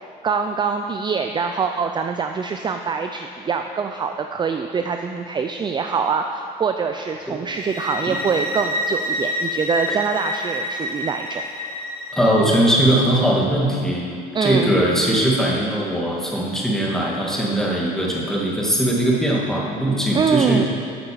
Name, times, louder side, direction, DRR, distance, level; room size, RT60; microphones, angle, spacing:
voice 1, 0.2-11.4 14.3-14.8 20.1-20.7, right 5 dB, 25° right, 5 dB, 0.4 m, -24 dB
sound 1, 7.5-12.4, left 1 dB, 50° left, 2.6 m, -28 dB
voice 2, 12.1-14.1 14.4-20.7, right 1 dB, 5° left, -4 dB, 2.2 m, -20 dB
8.7 x 6.6 x 7.0 m, 2.3 s
cardioid pair, 110°, 17 cm